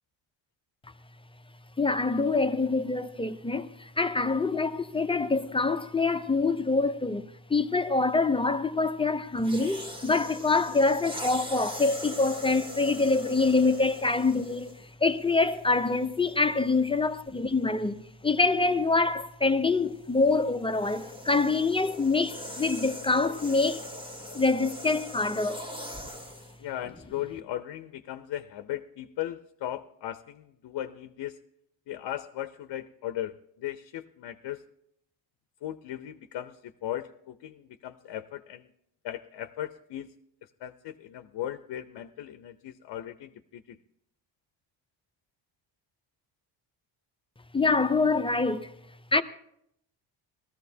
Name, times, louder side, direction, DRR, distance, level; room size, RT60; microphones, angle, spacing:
voice 1, 1.8-14.7 15.0-23.8 24.3-25.7 47.5-48.7 49.1-49.2, left 3 dB, 15° left, 0.5 m, -25 dB
sound 1, 9.4-14.9 15.7-15.9 19.9-26.6, left 1 dB, 10° right, 1.4 m, -41 dB
voice 2, 26.6-31.4 31.9-34.6 35.6-38.7 39.0-40.1 40.6-43.8, left 12 dB, 60° left, 0.6 m, -37 dB
19.0 x 14.0 x 2.7 m
cardioid pair, 105°, 45 cm